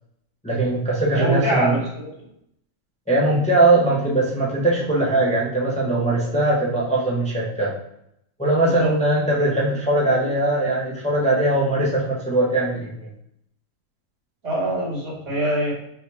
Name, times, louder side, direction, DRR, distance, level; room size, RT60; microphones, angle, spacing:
voice 1, 0.4-1.8 3.1-7.7 8.4-13.1, right 2 dB, 5° left, -5 dB, 0.7 m, -20 dB
voice 2, 1.1-2.1 8.6-8.9 14.4-15.7, right 1 dB, 60° right, -5 dB, 1.9 m, -24 dB
5.5 x 2.4 x 3.3 m, 0.76 s
omnidirectional pair, 1.4 m